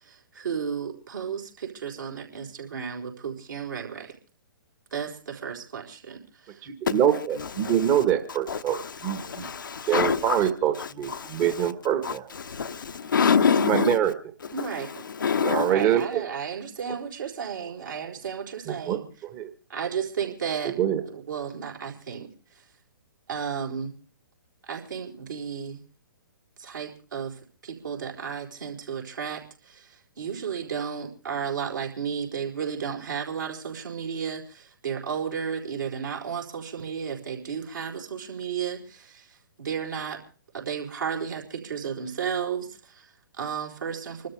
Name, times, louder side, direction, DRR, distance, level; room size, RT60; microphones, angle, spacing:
voice 1, 0.0-4.2 4.9-6.7 14.5-15.0 15.6-19.0 19.7-20.7 21.1-22.6 23.3-23.9 24.6-25.8 26.6-40.2 40.5-44.3, right 7 dB, 65° right, 4.3 m, -33 dB
voice 2, 6.6-9.5 9.9-12.3 13.6-14.1 15.3-16.2 18.6-19.5 20.6-21.0, right 10 dB, 25° right, 1.5 m, -25 dB
voice 3, 8.5-10.4 10.8-11.5 12.0-14.0 14.6-15.7, left 6 dB, 65° left, 0.9 m, -26 dB
27.0 x 13.0 x 3.4 m
figure-of-eight pair, 125°, 12 cm